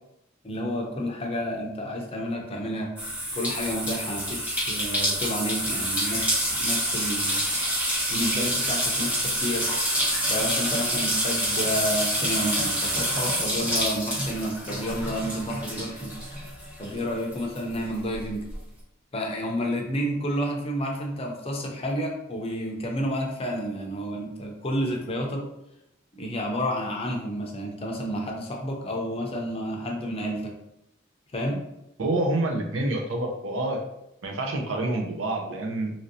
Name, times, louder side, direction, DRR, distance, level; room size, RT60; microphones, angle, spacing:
voice 1, 0.4-2.9 3.3-7.5 8.1-9.7 10.3-16.1 16.8-18.4 19.1-25.5 26.2-30.5 31.3-31.6, equal, 30° left, 0 dB, 0.5 m, -30 dB
sound 1, 3.0-17.0 17.3-18.5, equal, 10° right, 0.8 m, -27 dB
voice 2, 32.0-33.8 34.2-35.9, right 2 dB, 75° right, 2 dB, 0.6 m, -27 dB
3.1 x 2.6 x 2.6 m, 0.85 s
head